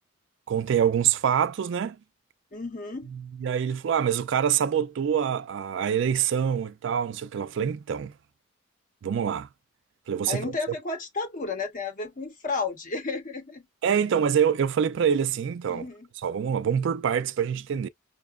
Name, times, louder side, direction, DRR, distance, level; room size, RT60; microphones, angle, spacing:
voice 1, 0.5-2.0 3.1-8.1 9.0-9.5 10.1-10.5 13.8-15.9 16.2-17.9, right 8 dB, 60° right, 0.3 m, -25 dB
voice 2, 2.5-3.1 10.3-13.6 15.7-16.1, left 4 dB, 40° left, 0.8 m, -32 dB
5.7 x 2.0 x 2.3 m
head